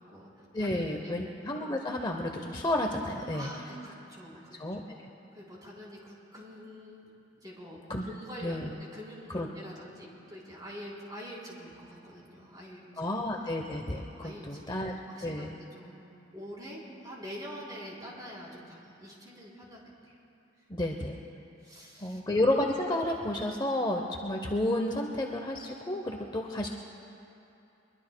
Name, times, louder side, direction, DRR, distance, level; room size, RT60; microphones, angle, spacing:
voice 1, 0.0-1.2 3.3-4.6 5.3-7.1 7.4-8.6 8.9-13.2 14.2-16.0 16.3-20.2 21.6-22.2, equal, 20° right, -5 dB, 3.6 m, -46 dB
voice 2, 0.5-3.5 4.6-5.0 7.9-8.1 8.4-8.7 9.3-9.5 13.0-14.9 15.2-15.6 20.7-21.2 22.0-26.7, left 1 dB, 25° left, 1 dB, 0.7 m, -31 dB
23.0 x 22.5 x 2.2 m, 2.8 s
head